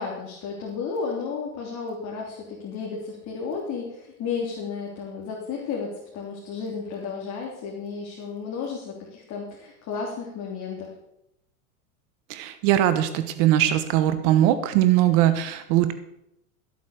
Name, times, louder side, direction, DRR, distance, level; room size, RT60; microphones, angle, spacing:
voice 1, 0.0-10.9, left 5 dB, 40° left, -2 dB, 3.3 m, -33 dB
voice 2, 12.3-15.9, right 12 dB, 55° right, 10 dB, 1.2 m, -21 dB
14.0 x 8.3 x 6.7 m, 0.80 s
hypercardioid pair, 115°, 43 cm